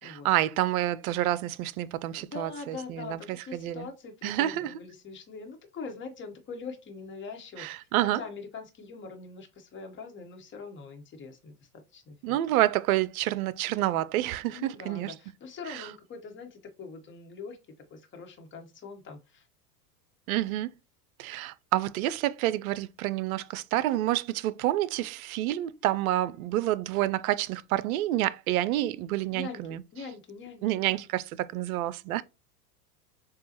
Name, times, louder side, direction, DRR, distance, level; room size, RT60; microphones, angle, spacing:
voice 1, 0.0-3.9 4.2-4.7 7.6-8.2 12.2-15.1 15.7-15.9 20.3-20.7 21.2-29.8 30.6-32.2, right 14 dB, 65° right, 0.6 m, -28 dB
voice 2, 2.2-12.4 14.5-17.6 17.9-19.5 29.3-31.0, left 4 dB, 25° left, 1.2 m, -43 dB
6.8 x 2.4 x 2.9 m
hypercardioid pair, 90°, 47 cm